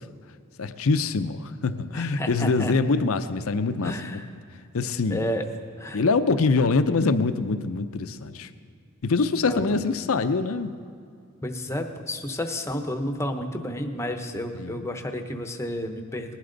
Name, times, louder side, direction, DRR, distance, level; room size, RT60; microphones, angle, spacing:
voice 1, 0.6-4.2 4.7-5.3 5.9-8.5 9.0-10.7 14.6-14.8, left 4 dB, 70° left, 11 dB, 0.6 m, -24 dB
voice 2, 1.9-2.7 3.8-4.2 5.1-5.5 5.8-6.0 9.5-9.6 11.4-16.4, left 1 dB, 15° left, 5 dB, 0.8 m, -31 dB
19.5 x 11.0 x 3.9 m, 2.4 s
head